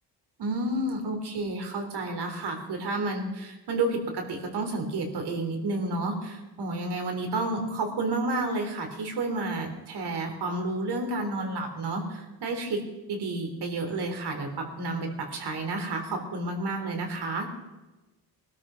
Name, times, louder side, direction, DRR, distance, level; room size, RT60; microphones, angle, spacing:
voice 1, 0.4-12.8 13.1-17.5, right 2 dB, 70° right, 3 dB, 3.8 m, -30 dB
21.0 x 13.0 x 5.2 m, 1.1 s
cardioid pair, 90°, 41 cm